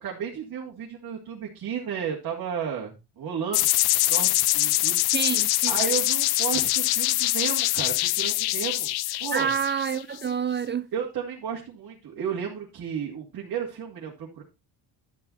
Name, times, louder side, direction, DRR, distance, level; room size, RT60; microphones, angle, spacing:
voice 1, 0.0-3.7 4.0-5.0 5.7-8.9 9.2-9.5 10.9-14.4, right 7 dB, 55° right, 2.5 m, -33 dB
sound 1, 3.5-10.2, left 17 dB, 65° left, 0.5 m, -24 dB
voice 2, 5.1-5.7 9.3-10.9, right 7 dB, 30° right, 0.4 m, -28 dB
12.0 x 6.0 x 4.0 m
cardioid pair, 105°, 40 cm